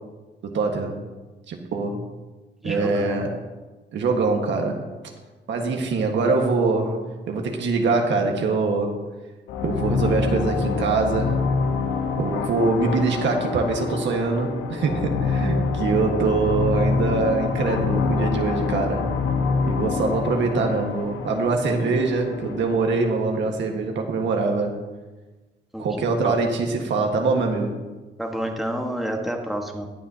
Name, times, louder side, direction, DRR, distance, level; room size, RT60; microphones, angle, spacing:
voice 1, 0.4-1.0 1.5-2.0 2.6-3.3 3.9-4.8 5.5-9.0 9.6-11.4 12.2-19.1 19.6-24.8 25.8-27.7, right 3 dB, 65° right, 2 dB, 1.6 m, -23 dB
voice 2, 2.6-3.2 20.4-20.5 25.7-26.3 28.2-29.9, right 1 dB, ahead, 1 dB, 1.4 m, -29 dB
sound 1, 9.5-22.8, left 4 dB, 80° left, 1.1 m, -26 dB
20.0 x 7.3 x 2.8 m, 1.2 s
cardioid pair, 90°, 20 cm